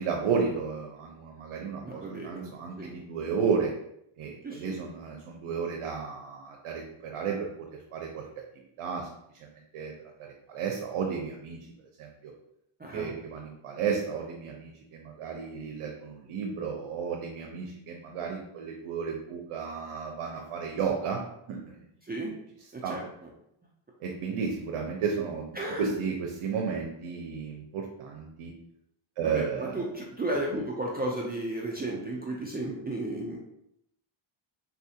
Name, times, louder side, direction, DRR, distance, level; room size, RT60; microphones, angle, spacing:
voice 1, 0.0-3.7 4.2-7.5 7.9-8.3 8.8-9.1 9.7-9.9 10.2-11.6 12.0-12.3 12.9-21.2 21.5-21.7 22.8-23.0 24.0-25.4 25.8-28.5 29.2-29.7, right 6 dB, 80° right, 1 dB, 0.7 m, -33 dB
voice 2, 1.8-2.5 2.8-3.0 4.4-4.8 12.8-13.1 22.0-22.3 22.7-23.3 25.6-25.9 29.2-33.4, right 1 dB, 20° right, -2 dB, 0.4 m, -34 dB
4.1 x 2.4 x 2.7 m, 0.77 s
wide cardioid pair, 130°, 50 cm